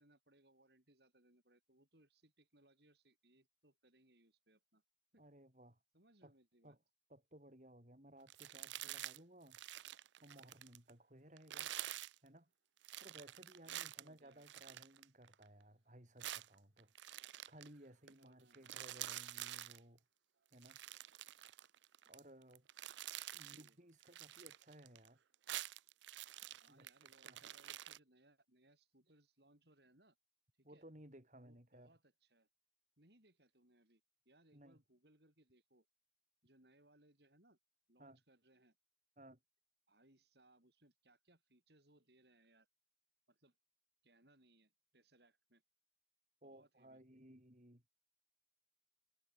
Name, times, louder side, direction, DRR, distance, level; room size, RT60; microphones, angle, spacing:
voice 1, 0.0-4.8 5.1-5.2 5.9-6.8 13.6-14.5 18.2-18.8 23.4-23.8 26.6-30.2 30.6-30.8 31.4-32.5 33.0-35.9 36.4-37.6 37.9-38.8 39.9-42.7 43.3-43.6 44.0-45.6 46.4-47.0, right 1 dB, 60° right, 6.3 m, -71 dB
voice 2, 5.2-5.8 6.2-6.3 6.6-6.8 7.1-9.6 10.2-11.7 12.2-12.5 13.0-20.0 20.5-20.8 22.1-22.7 23.3-25.2 26.7-27.4 30.6-31.9 34.5-34.8 38.0-38.2 39.2-39.4 46.4-47.8, right 1 dB, 40° right, 4.6 m, -60 dB
sound 1, 8.3-9.2 9.5-10.9 11.4-12.2 12.8-15.5 16.2-17.7 18.1-18.2 18.5-19.8 20.5-22.2 22.5-23.7 24.0-25.1 25.3-28.0, right 14 dB, 75° right, 0.5 m, -48 dB
head